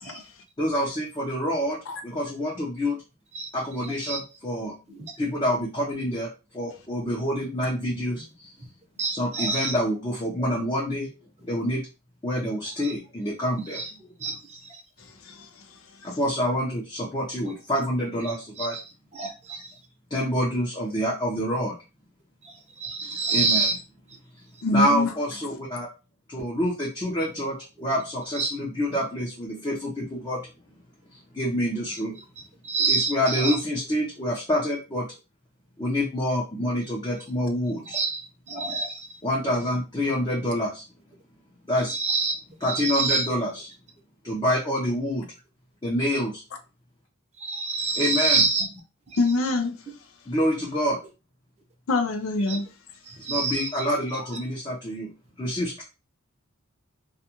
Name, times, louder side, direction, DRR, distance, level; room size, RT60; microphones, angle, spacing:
voice 1, 0.6-3.0 3.5-4.7 5.2-8.5 9.1-11.1 11.4-11.8 12.2-13.8 16.0-18.8 20.1-21.8 23.3-23.7 24.7-25.9 26.3-30.5 31.3-32.2 32.9-35.1 35.8-38.0 39.2-40.8 41.7-41.9 42.6-43.5 44.2-45.3 45.8-46.4 48.0-48.4 50.3-51.0 53.3-55.1 55.4-55.8, equal, 20° left, 0.6 m, -27 dB
voice 2, 3.8-4.2 4.9-5.1 9.0-9.7 12.7-12.9 13.7-13.9 14.2-14.8 18.6-18.8 19.1-19.7 22.4-23.7 28.3-28.5 32.6-33.6 37.8-39.1 41.9-42.3 42.7-43.3 47.4-48.7 49.1-49.2 52.5-52.6 53.1-53.8 54.1-54.3, right 4 dB, 30° right, 0.7 m, -27 dB
voice 3, 15.2-15.6 16.0-16.1 23.0-23.2 24.6-25.1 49.2-49.8 51.9-52.7, left 2 dB, 70° left, 0.5 m, -25 dB
2.4 x 2.3 x 2.8 m
head